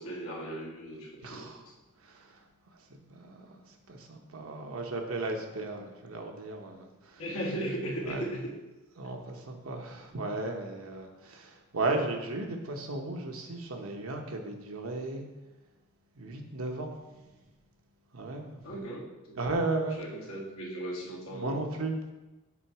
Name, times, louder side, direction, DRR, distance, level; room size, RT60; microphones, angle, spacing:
voice 1, 0.0-1.7 7.2-8.5 18.6-19.4 20.0-21.6, right 1 dB, 85° left, -4 dB, 1.7 m, -37 dB
voice 2, 1.2-1.6 2.1-2.3 3.1-3.5 3.9-7.2 8.1-8.2 9.0-15.3 16.2-16.9 18.1-18.6 19.4-20.0 21.3-22.1, right 2 dB, 90° right, 3 dB, 1.0 m, -35 dB
7.4 x 4.0 x 4.8 m, 1.1 s
head